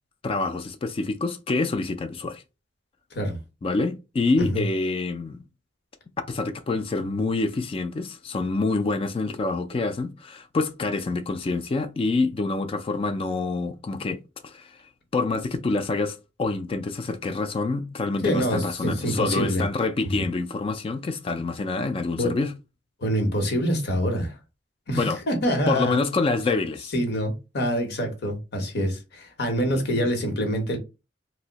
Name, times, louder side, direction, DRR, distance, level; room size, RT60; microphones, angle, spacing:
voice 1, 0.2-2.4 3.6-5.4 6.2-22.5 25.0-25.2 25.7-26.9, left 3 dB, 30° left, 0.3 m, -27 dB
voice 2, 18.2-19.6 20.0-20.3 22.1-22.3 23.0-24.4 24.9-26.0 26.9-30.8, equal, 60° left, 0.9 m, -26 dB
2.6 x 2.1 x 3.8 m
head